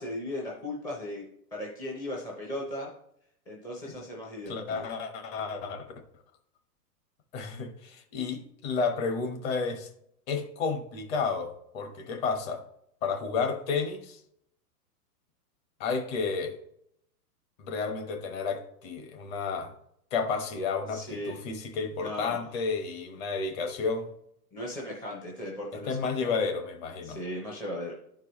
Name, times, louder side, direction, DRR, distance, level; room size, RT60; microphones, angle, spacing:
voice 1, 0.0-2.9 3.5-4.9 20.9-21.4 22.0-22.4 24.5-26.3 27.0-27.9, left 1 dB, 5° left, -3 dB, 0.5 m, -37 dB
voice 2, 4.5-5.9 7.3-9.9 10.3-12.6 13.0-14.2 15.8-16.5 17.6-19.7 20.1-24.1 25.9-27.2, left 5 dB, 40° left, 6 dB, 1.2 m, -31 dB
12.0 x 4.7 x 3.0 m, 0.74 s
hypercardioid pair, 140°, 49 cm